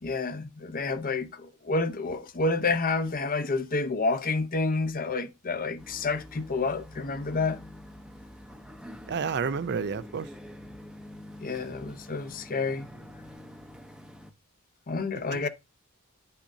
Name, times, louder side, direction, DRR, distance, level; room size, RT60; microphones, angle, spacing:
voice 1, 0.0-7.6 11.4-12.9 14.9-15.5, left 3 dB, 40° left, 0.8 m, -29 dB
sound 1, 5.8-14.3, left 1 dB, 5° right, 0.7 m, -46 dB
voice 2, 9.1-10.3 15.1-15.5, right 5 dB, 50° right, 0.5 m, -31 dB
10.0 x 5.7 x 2.6 m
head